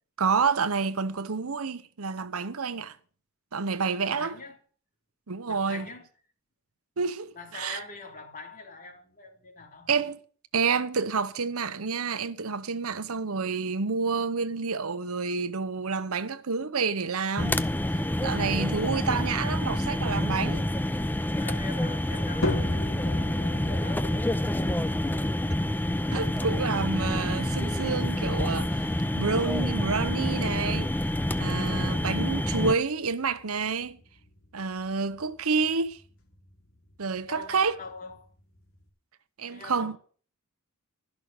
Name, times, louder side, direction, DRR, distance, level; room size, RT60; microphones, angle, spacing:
voice 1, 0.2-3.0 3.5-4.3 5.3-5.8 7.0-7.8 9.9-10.2 10.5-17.7 18.2-20.7 26.1-30.9 31.4-34.0 34.5-36.0 37.0-37.8 39.4-40.0, right 5 dB, 80° right, 0.9 m, -29 dB
voice 2, 4.0-4.6 5.5-6.1 7.3-9.9 21.4-24.6 37.3-38.3 39.5-40.0, left 3 dB, 40° left, 3.4 m, -43 dB
sound 1, 17.4-32.7, left 1 dB, 10° left, 0.5 m, -28 dB
sound 2, 22.4-38.9, left 1 dB, 65° left, 3.5 m, -40 dB
12.5 x 6.2 x 8.8 m
head